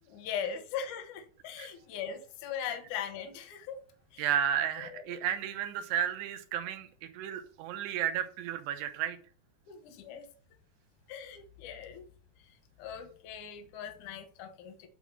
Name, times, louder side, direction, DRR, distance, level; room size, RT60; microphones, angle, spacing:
voice 1, 0.1-3.8 4.1-4.2 4.8-5.2 9.7-10.3 11.1-12.1 12.8-14.9, left 8 dB, 70° left, 1.8 m, -40 dB
voice 2, 4.2-9.2, right 9 dB, 85° right, 3.0 m, -33 dB
9.3 x 4.1 x 6.0 m
omnidirectional pair, 4.8 m